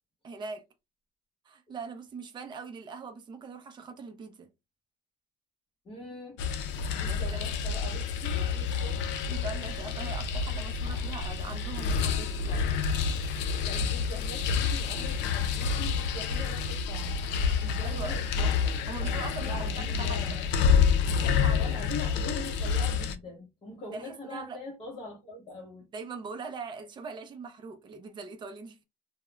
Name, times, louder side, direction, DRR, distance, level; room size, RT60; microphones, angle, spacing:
voice 1, 0.2-0.6 1.5-4.5 6.9-7.4 9.3-12.6 17.8-18.1 18.9-20.2 21.1-21.7 23.9-24.6 25.9-28.8, right 4 dB, 25° right, 0.4 m, -41 dB
voice 2, 5.8-6.4 6.9-9.3 12.5-12.7 13.6-17.2 17.6-20.8 21.6-25.9, left 2 dB, 30° left, 0.7 m, -43 dB
sound 1, 6.4-23.1, left 6 dB, 85° left, 0.4 m, -28 dB
2.3 x 2.0 x 3.0 m
cardioid pair, 150°, 18 cm